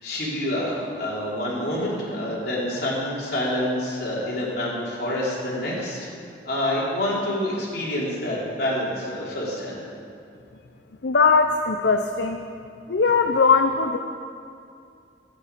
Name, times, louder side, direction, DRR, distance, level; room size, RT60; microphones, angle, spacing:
voice 1, 0.0-6.0 6.4-9.8, left 1 dB, 65° left, -6 dB, 4.4 m, -27 dB
voice 2, 11.0-12.4 12.9-14.0, left 4 dB, 80° left, 6 dB, 0.7 m, -20 dB
13.5 x 9.3 x 8.6 m, 2.4 s
head